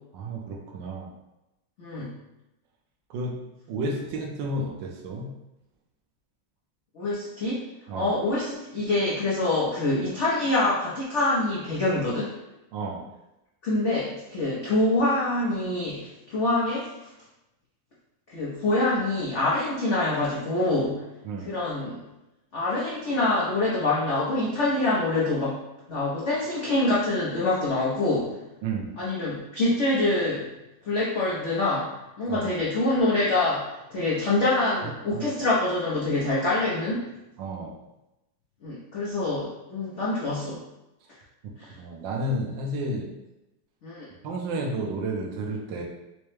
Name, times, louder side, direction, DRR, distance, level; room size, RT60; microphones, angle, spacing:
voice 1, 0.1-1.1 3.1-3.4 3.7-5.3 7.9-8.1 12.7-13.1 21.2-21.5 28.6-28.9 32.3-32.5 35.1-35.3 37.4-37.8 41.8-43.1 44.2-45.8, right 1 dB, 70° right, 1 dB, 1.3 m, -31 dB
voice 2, 1.8-2.1 6.9-7.6 7.9-12.3 13.6-16.9 18.3-21.0 21.4-22.0 22.5-25.6 25.9-28.4 29.0-30.5 30.8-37.1 38.6-40.6 41.6-41.7 43.8-44.1, left 2 dB, 85° left, -8 dB, 0.6 m, -25 dB
4.8 x 2.1 x 3.1 m, 0.95 s
omnidirectional pair, 2.3 m